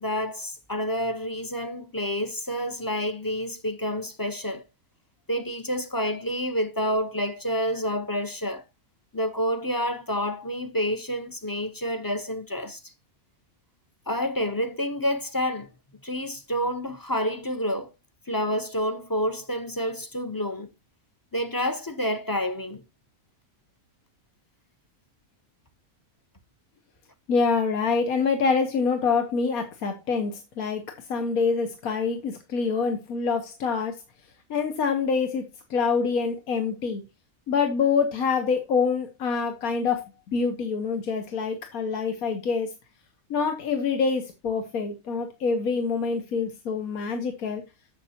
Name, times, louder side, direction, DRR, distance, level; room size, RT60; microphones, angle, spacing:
voice 1, 0.0-4.6 5.3-8.6 9.1-12.9 14.1-15.7 16.0-17.9 18.3-20.7 21.3-22.8, equal, 20° left, 0.6 m, -28 dB
voice 2, 27.3-30.8 31.1-33.9 34.5-37.0 37.5-42.7 43.3-47.6, left 5 dB, 80° left, 1.6 m, -26 dB
11.0 x 7.6 x 2.8 m
omnidirectional pair, 1.5 m